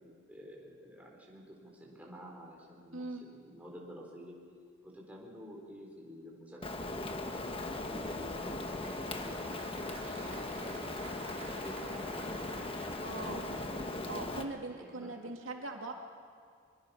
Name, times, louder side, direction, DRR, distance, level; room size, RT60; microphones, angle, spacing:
voice 1, 0.0-4.4 4.8-12.8 13.1-15.3, equal, 10° right, -3 dB, 4.4 m, -50 dB
voice 2, 2.9-3.3 13.0-13.4 14.1-15.9, right 2 dB, 70° right, 1 dB, 2.8 m, -41 dB
Rain, 6.6-14.4, left 2 dB, 25° left, 1.3 m, -39 dB
Applause, 7.7-14.8, right 3 dB, 35° right, 3.4 m, -52 dB
24.0 x 23.0 x 5.8 m, 2.1 s
head